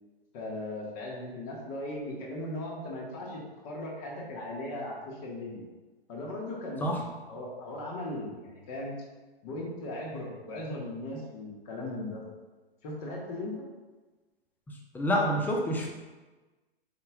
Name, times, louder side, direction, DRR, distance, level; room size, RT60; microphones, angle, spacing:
voice 1, 0.3-5.6 6.1-6.9 7.3-8.9 9.4-12.2 12.8-13.5, left 1 dB, 35° left, -3 dB, 1.7 m, -38 dB
voice 2, 14.9-15.9, equal, 5° left, -1 dB, 0.8 m, -27 dB
8.5 x 5.7 x 2.4 m, 1.2 s
figure-of-eight pair, 110°, 30 cm